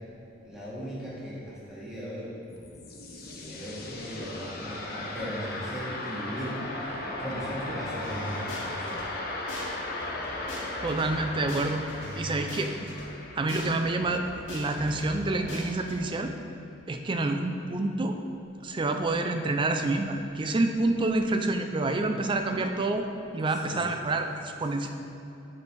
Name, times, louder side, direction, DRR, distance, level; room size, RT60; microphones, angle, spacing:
voice 1, 0.4-2.4 3.0-6.6 6.9-9.0 23.5-23.9 24.8-24.9, equal, 5° right, -8 dB, 1.7 m, -38 dB
sound 1, 2.3-15.2, left 2 dB, 50° left, 0.9 m, -37 dB
sound 2, 8.0-9.1 9.5-9.7 10.0-13.1 13.5-13.7 14.0-16.0, left 1 dB, 80° left, 1.6 m, -40 dB
voice 2, 10.8-11.8 12.2-12.7 13.3-14.2 14.5-16.3 16.9-18.2 18.6-23.1 23.3-24.9, right 2 dB, 25° right, 6 dB, 0.4 m, -28 dB
6.8 x 5.2 x 4.6 m, 2.9 s
head